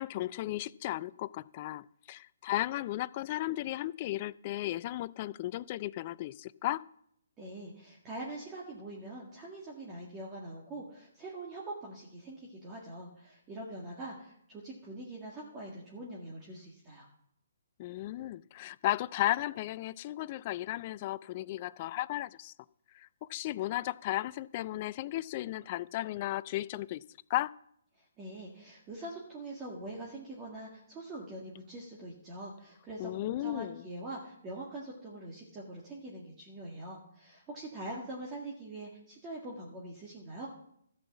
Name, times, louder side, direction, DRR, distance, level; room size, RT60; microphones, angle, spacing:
voice 1, 0.0-6.8 17.8-22.5 22.9-27.0 27.3-27.5 33.0-33.8, left 15 dB, 35° left, 18 dB, 0.3 m, -35 dB
voice 2, 7.4-17.1 28.0-40.5, right 1 dB, 20° right, -4 dB, 1.9 m, -44 dB
13.5 x 5.5 x 7.2 m, 0.71 s
hypercardioid pair, 150°, 0 cm